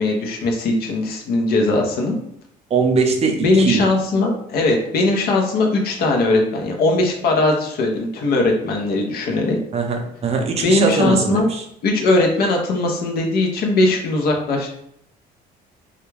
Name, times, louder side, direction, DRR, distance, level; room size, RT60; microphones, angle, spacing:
voice 1, 0.0-2.2 3.4-9.6 10.6-11.5 11.8-14.7, left 2 dB, 65° left, 2 dB, 0.7 m, -19 dB
voice 2, 2.7-3.8 9.7-11.6, right 4 dB, 40° right, 4 dB, 0.5 m, -20 dB
2.3 x 2.2 x 3.1 m, 0.71 s
cardioid pair, 110°, 17 cm